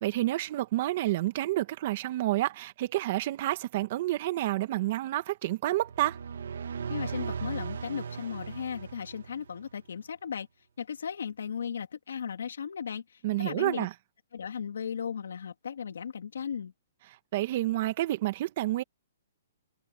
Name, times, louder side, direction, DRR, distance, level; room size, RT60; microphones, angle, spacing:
voice 1, 0.0-6.2 13.2-13.9 17.3-18.8, right 16 dB, 40° right, 1.5 m, -29 dB
sound 1, 5.8-9.7, right 6 dB, 80° right, 1.3 m, -37 dB
voice 2, 6.9-10.5 10.8-13.9 14.3-16.7, left 7 dB, 85° left, 2.7 m, -36 dB
hypercardioid pair, 160°, 0 cm